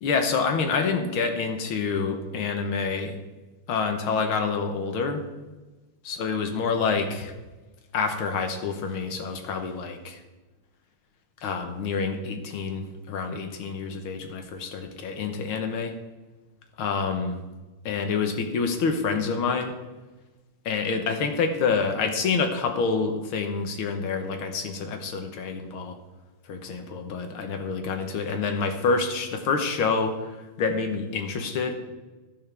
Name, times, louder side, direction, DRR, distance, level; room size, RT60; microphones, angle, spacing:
voice 1, 0.0-3.2 3.7-5.2 6.0-7.3 7.9-10.2 11.4-15.9 16.8-17.4 17.9-19.7 20.7-26.0 26.5-30.3 30.6-31.7, left 5 dB, 70° left, 6 dB, 1.9 m, -27 dB
11.5 x 11.0 x 3.4 m, 1.2 s
omnidirectional pair, 2.4 m